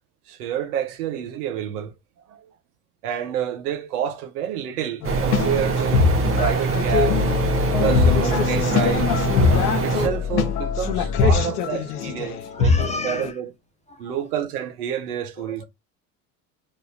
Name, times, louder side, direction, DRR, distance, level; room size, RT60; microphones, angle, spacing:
voice 1, 0.3-1.9 2.3-2.5 3.0-6.1 6.4-7.3 7.8-9.1 9.8-13.5 14.0-15.6, right 9 dB, 75° right, 0.9 m, -28 dB
sound 1, 5.0-13.3, left 5 dB, 75° left, 0.7 m, -23 dB
sound 2, 5.0-10.1, right 5 dB, 30° right, 0.8 m, -24 dB
sound 3, 5.9-8.7 9.0-11.4, left 5 dB, ahead, 1.2 m, -28 dB
voice 2, 12.3-13.3 13.9-14.0 15.4-15.6, left 2 dB, 15° left, 0.3 m, -34 dB
3.2 x 2.6 x 3.2 m
hypercardioid pair, 70°, 46 cm